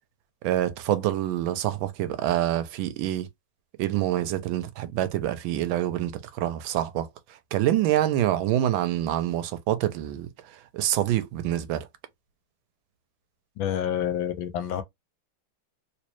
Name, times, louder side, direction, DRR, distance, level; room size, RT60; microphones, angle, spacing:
voice 1, 0.4-3.3 3.8-7.1 7.5-11.9, right 12 dB, 75° right, 1.3 m, -26 dB
voice 2, 13.6-14.8, left 10 dB, 75° left, 1.3 m, -28 dB
3.1 x 3.0 x 3.0 m
omnidirectional pair, 2.4 m